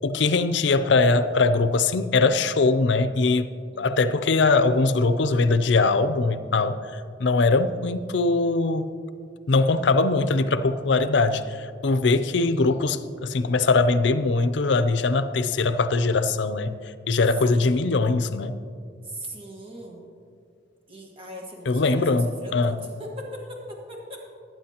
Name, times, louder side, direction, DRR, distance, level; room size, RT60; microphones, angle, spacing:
voice 1, 0.0-3.5 3.8-8.9 9.5-16.7 17.1-18.6 21.7-22.8, left 3 dB, 75° left, 11 dB, 0.5 m, -21 dB
voice 2, 3.7-4.3 17.5-17.9 19.0-20.0 20.9-24.2, equal, 30° right, -1 dB, 1.5 m, -40 dB
19.5 x 9.0 x 2.9 m, 2.3 s
head